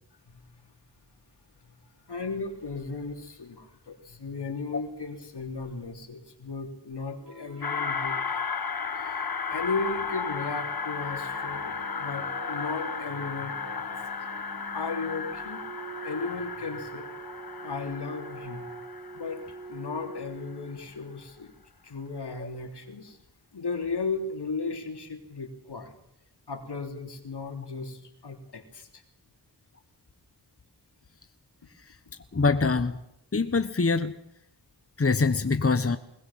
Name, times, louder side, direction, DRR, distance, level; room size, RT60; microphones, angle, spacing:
voice 1, 2.1-8.5 9.0-14.3 14.7-15.6 16.0-17.1 17.6-18.7 19.1-19.4 19.7-21.5 21.8-23.2 23.5-25.9 26.5-29.0, left 4 dB, 75° left, 5 dB, 3.5 m, -35 dB
sound 1, 7.2-20.9, right 4 dB, 65° right, 7.4 m, -45 dB
sound 2, 7.6-20.3, left 6 dB, 60° left, 1.5 m, -34 dB
voice 2, 32.3-33.0 33.3-34.2 35.0-36.0, left 4 dB, 35° left, 10 dB, 1.4 m, -24 dB
21.0 x 20.0 x 7.5 m, 0.78 s
cardioid pair, 45°, 41 cm